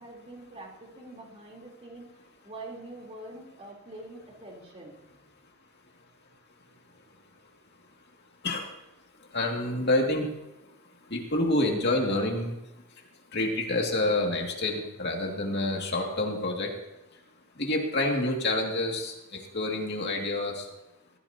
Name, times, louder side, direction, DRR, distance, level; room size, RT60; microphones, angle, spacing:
voice 1, 0.0-2.1 2.4-5.0, right 2 dB, 30° right, -2 dB, 3.7 m, -44 dB
voice 2, 9.3-10.3 11.1-12.5 13.3-16.7 17.6-20.6, left 2 dB, 50° left, 0 dB, 2.4 m, -28 dB
22.0 x 15.5 x 2.9 m, 0.91 s
head